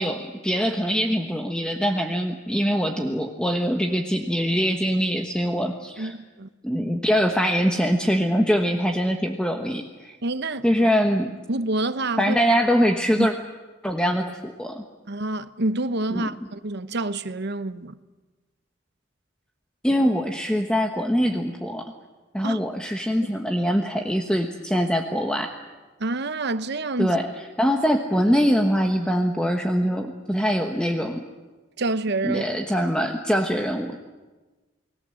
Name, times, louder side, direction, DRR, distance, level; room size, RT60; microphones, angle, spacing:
voice 1, 0.0-6.1 6.6-10.2 10.6-11.3 12.2-13.3 13.8-14.8 16.1-16.3 19.8-21.9 22.3-25.5 27.0-27.3 27.6-31.2 32.2-34.0, equal, 5° left, 1.3 m, -23 dB
voice 2, 6.0-6.5 10.2-10.7 11.5-12.4 13.2-13.3 15.1-18.0 22.4-22.6 26.0-27.2 31.8-32.6, right 2 dB, 60° right, 1.0 m, -27 dB
29.5 x 20.0 x 7.8 m
head